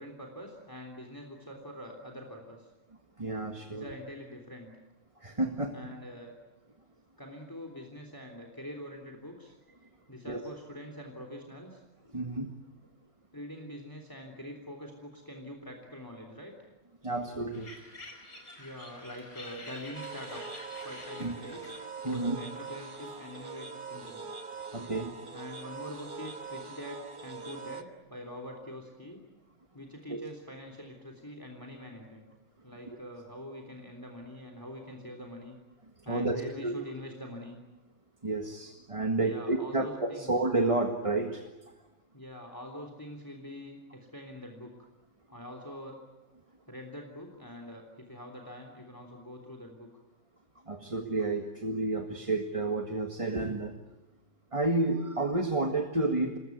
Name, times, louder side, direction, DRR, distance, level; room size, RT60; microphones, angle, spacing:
voice 1, 0.0-2.7 3.7-4.7 5.7-6.3 7.2-9.6 10.1-11.8 13.3-16.5 18.6-20.4 20.8-21.8 22.0-24.3 25.3-29.2 29.7-32.3 32.6-35.6 36.0-37.6 39.2-40.3 42.1-44.9 45.3-46.0 46.7-49.9, left 1 dB, 15° left, 3 dB, 3.3 m, -44 dB
voice 2, 3.2-3.9 5.2-5.8 10.3-10.4 12.1-12.5 17.0-17.7 21.2-21.3 22.0-22.4 24.7-25.1 30.1-30.2 36.0-36.7 38.2-41.4 50.7-53.8 54.5-56.4, right 2 dB, 25° right, 4 dB, 1.8 m, -30 dB
sound 1, 17.5-23.6, left 2 dB, 50° left, 5.3 m, -49 dB
sound 2, 19.9-27.8, right 4 dB, 40° right, 1.5 m, -43 dB
27.0 x 21.5 x 9.4 m, 1.0 s
omnidirectional pair, 1.4 m